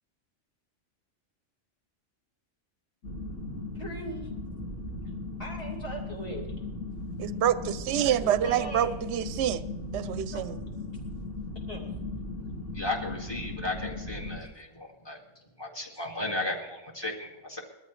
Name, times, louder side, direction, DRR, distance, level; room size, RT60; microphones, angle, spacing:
sound 1, 3.0-14.4, left 2 dB, 70° left, 2.2 m, -37 dB
voice 1, 3.7-4.3 5.4-6.4 8.4-9.0 10.3-10.4 11.7-11.9 15.3-15.4 15.9-16.1 17.0-17.1, right 1 dB, 45° left, 3.2 m, -39 dB
voice 2, 7.2-9.6 9.9-10.6, right 10 dB, 65° right, 0.8 m, -27 dB
voice 3, 12.7-15.2 15.6-17.6, left 2 dB, 20° left, 2.2 m, -35 dB
21.0 x 13.5 x 3.2 m
omnidirectional pair, 1.3 m